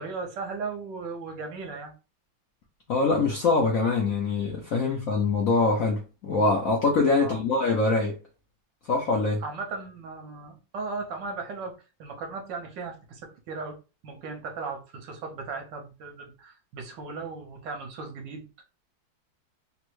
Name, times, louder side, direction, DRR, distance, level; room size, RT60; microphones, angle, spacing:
voice 1, 0.0-1.9 4.8-5.1 7.2-7.4 9.4-11.7 12.0-13.2 13.5-13.8 14.0-18.6, right 4 dB, 70° right, 1.4 m, -37 dB
voice 2, 2.9-8.2 8.9-9.4, left 3 dB, 70° left, 0.8 m, -24 dB
3.4 x 2.1 x 3.0 m
omnidirectional pair, 2.1 m